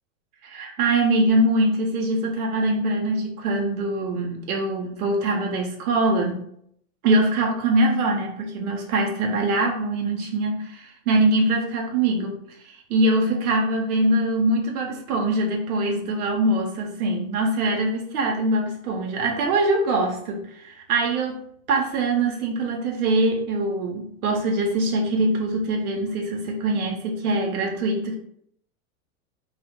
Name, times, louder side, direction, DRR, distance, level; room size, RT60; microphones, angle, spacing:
voice 1, 0.4-6.4 7.0-28.2, right 2 dB, 90° right, 0 dB, 0.6 m, -23 dB
2.1 x 2.1 x 2.9 m, 0.70 s
hypercardioid pair, 125°, 43 cm